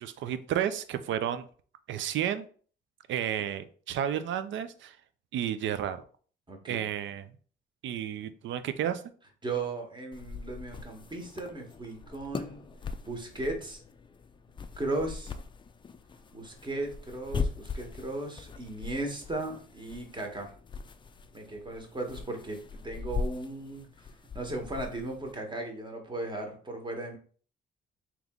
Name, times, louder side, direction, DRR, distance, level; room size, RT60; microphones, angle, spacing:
voice 1, 0.0-1.5 1.9-2.5 3.1-5.0 5.3-6.0 6.7-7.3 7.8-9.0, right 10 dB, 70° right, 11 dB, 0.5 m, -32 dB
voice 2, 6.5-6.8 9.4-12.6 13.0-13.8 14.8-15.3 16.3-20.5 21.3-23.9 24.3-27.2, right 2 dB, 25° right, 2 dB, 1.2 m, -36 dB
sound 1, 10.1-25.3, left 4 dB, 25° left, 0.4 m, -40 dB
3.5 x 3.0 x 3.6 m, 0.43 s
cardioid pair, 90°, 20 cm